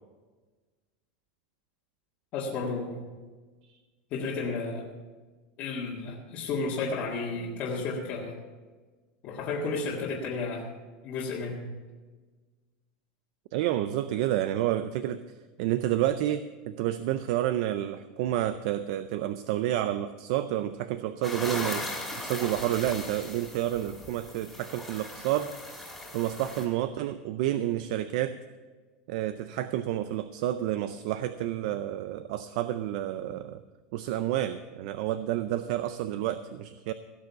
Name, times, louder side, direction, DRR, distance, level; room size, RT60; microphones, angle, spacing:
voice 1, 2.3-3.0 4.1-4.9 5.6-8.3 9.2-10.7 11.0-11.6, left 4 dB, 35° left, -5 dB, 1.8 m, -32 dB
voice 2, 13.5-15.2 15.6-21.9 22.2-25.5 26.1-28.4 29.1-33.6 33.9-36.9, right 12 dB, 55° right, 12 dB, 0.5 m, -29 dB
sound 1, 21.2-26.7, left 1 dB, ahead, 2.4 m, -38 dB
17.0 x 6.6 x 7.0 m, 1.4 s
supercardioid pair, 170°, 4 cm